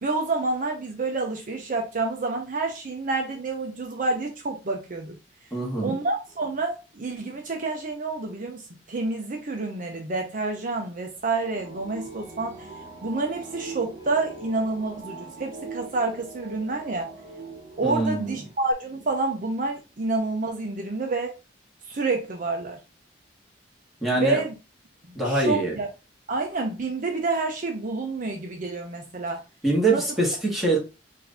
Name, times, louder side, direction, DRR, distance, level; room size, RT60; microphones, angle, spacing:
voice 1, 0.0-5.2 5.8-8.6 8.9-12.7 13.0-17.1 17.8-21.3 21.9-22.8 24.2-24.5 25.1-25.9 26.3-29.4 29.9-30.0, right 3 dB, 45° right, 0.7 m, -28 dB
voice 2, 5.5-6.0 17.8-18.4 24.0-24.4 25.1-25.8 29.6-30.8, right 2 dB, ahead, 1.6 m, -24 dB
sound 1, 11.2-18.7, right 3 dB, 20° right, 1.6 m, -42 dB
4.7 x 2.7 x 3.3 m
head